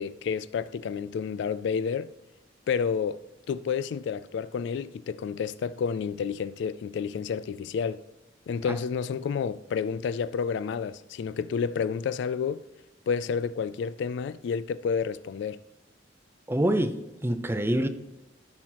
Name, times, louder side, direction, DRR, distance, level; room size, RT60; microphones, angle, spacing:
voice 1, 0.0-2.1 2.7-8.0 8.5-12.7 13.1-15.6, left 6 dB, 65° left, 0.3 m, -30 dB
voice 2, 16.5-17.9, right 1 dB, 15° right, 0.5 m, -26 dB
14.0 x 6.2 x 2.9 m
head